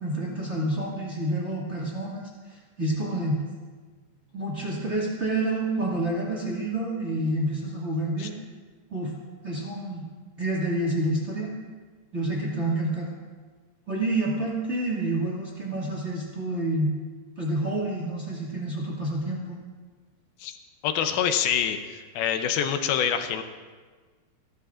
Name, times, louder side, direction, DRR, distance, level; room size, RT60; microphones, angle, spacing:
voice 1, 0.0-3.5 4.3-8.3 8.9-9.1 9.4-10.0 10.4-11.5 12.1-13.1 13.9-16.9 17.4-19.6, right 1 dB, 30° right, -4 dB, 1.2 m, -28 dB
voice 2, 20.8-23.4, left 8 dB, 75° left, 7 dB, 2.4 m, -26 dB
30.0 x 13.0 x 2.5 m, 1.5 s
omnidirectional pair, 4.8 m